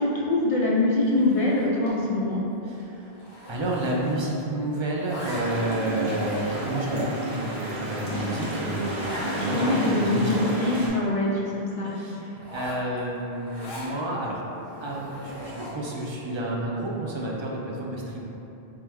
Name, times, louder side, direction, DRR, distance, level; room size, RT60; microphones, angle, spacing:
voice 1, 0.0-2.4 9.5-11.9, left 2 dB, 50° left, -5 dB, 0.4 m, -24 dB
Zipper (clothing), 1.0-2.0 2.3-2.5 2.8-4.5 4.7-5.8 6.4-6.5 7.1-7.2 7.6-7.7 7.9-8.0 8.3-8.4 9.0-9.3 9.8-9.9 10.1-11.4 12.3-13.9 14.5-15.9, left 1 dB, 65° left, 1.2 m, -41 dB
voice 2, 2.6-3.2 3.5-10.4 11.8-14.4 14.8-18.2, right 1 dB, 45° right, -3 dB, 0.4 m, -30 dB
sound 1, 5.3-10.9, right 1 dB, 80° right, 1.1 m, -31 dB
3.5 x 3.2 x 3.4 m, 2.9 s
omnidirectional pair, 1.1 m